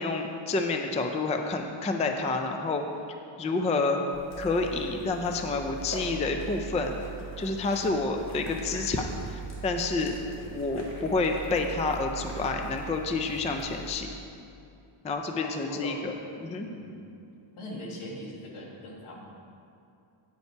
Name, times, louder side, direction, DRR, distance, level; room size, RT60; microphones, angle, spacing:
voice 1, 0.0-2.8 3.4-4.0 4.4-6.9 7.4-10.2 10.5-14.1 15.0-16.1 16.4-16.7, left 3 dB, 15° left, 4 dB, 0.3 m, -29 dB
sound 1, 4.1-13.9, right 3 dB, 30° left, 1.3 m, -41 dB
voice 2, 15.4-16.0 16.6-17.0 17.6-19.3, left 1 dB, 80° left, -2 dB, 1.7 m, -41 dB
9.3 x 5.5 x 4.5 m, 2.6 s
wide cardioid pair, 140°, 49 cm